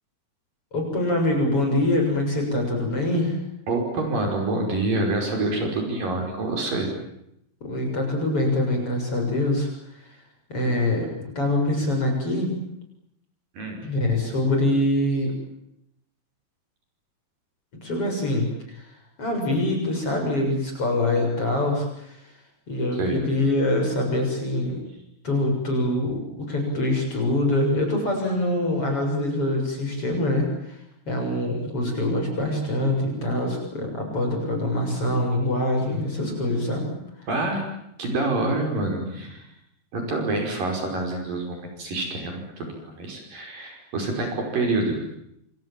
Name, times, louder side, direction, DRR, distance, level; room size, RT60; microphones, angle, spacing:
voice 1, 0.7-3.4 7.6-9.7 9.9-10.2 10.5-12.5 13.8-15.4 17.8-22.3 22.7-24.8 25.2-30.8 31.1-36.9 37.2-37.3, left 1 dB, 35° left, 2 dB, 7.7 m, -24 dB
voice 2, 3.7-6.9 13.5-13.8 22.9-23.2 37.3-37.6 38.0-39.5 39.9-45.0, right 2 dB, 55° right, 2 dB, 6.8 m, -27 dB
29.0 x 27.5 x 7.5 m, 0.79 s
omnidirectional pair, 4.7 m